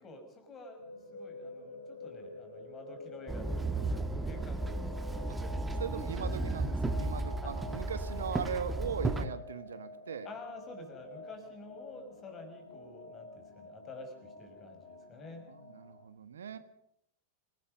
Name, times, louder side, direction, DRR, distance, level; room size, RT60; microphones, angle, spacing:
voice 1, 0.0-5.7 6.0-6.1 7.4-7.5 10.2-15.5, left 2 dB, 25° left, 6 dB, 5.9 m, -49 dB
sound 1, 0.8-16.0, left 2 dB, 80° left, 5.2 m, -49 dB
Walk footsteps / Chatter / Hiss, 3.3-9.3, right 2 dB, 10° right, 1.4 m, -34 dB
voice 2, 5.8-10.3 15.5-16.6, right 7 dB, 65° right, 11 dB, 1.5 m, -39 dB
27.0 x 19.0 x 5.3 m, 0.73 s
figure-of-eight pair, 90°, 0 cm